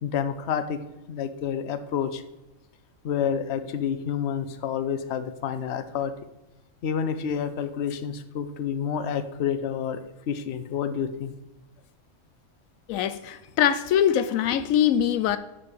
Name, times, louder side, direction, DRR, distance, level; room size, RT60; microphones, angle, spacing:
voice 1, 0.0-0.8 1.1-2.2 3.0-6.1 6.8-10.0 10.3-11.3, left 8 dB, 60° left, 1.0 m, -29 dB
voice 2, 12.9-15.4, left 10 dB, 85° left, 1.0 m, -23 dB
8.7 x 5.4 x 6.8 m
omnidirectional pair, 1.4 m